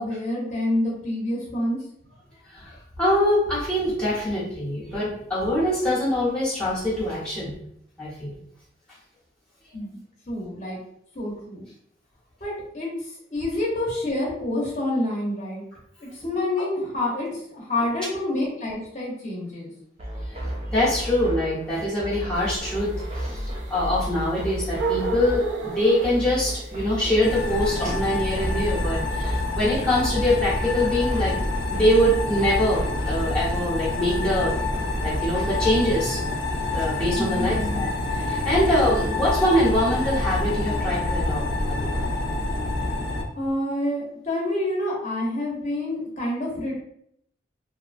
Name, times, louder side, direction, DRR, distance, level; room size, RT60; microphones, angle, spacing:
voice 1, 0.0-1.8 9.7-10.8 11.1-11.7 12.4-15.6 16.0-19.7 37.2-37.9 43.4-46.7, left 1 dB, 40° left, -4 dB, 0.9 m, -28 dB
voice 2, 2.5-7.5 8.0-8.3 20.3-22.9 23.2-31.3 31.7-34.5 35.0-36.2 36.7-37.9 38.1-41.4 41.7-41.9, left 1 dB, 5° left, -8 dB, 1.0 m, -24 dB
sound 1, 20.0-36.0, equal, 30° right, 0.4 m, -33 dB
sound 2, 22.3-27.5, right 5 dB, 85° right, 0.5 m, -32 dB
sound 3, 27.2-43.2, left 2 dB, 70° left, 0.5 m, -27 dB
2.7 x 2.3 x 2.5 m, 0.70 s
head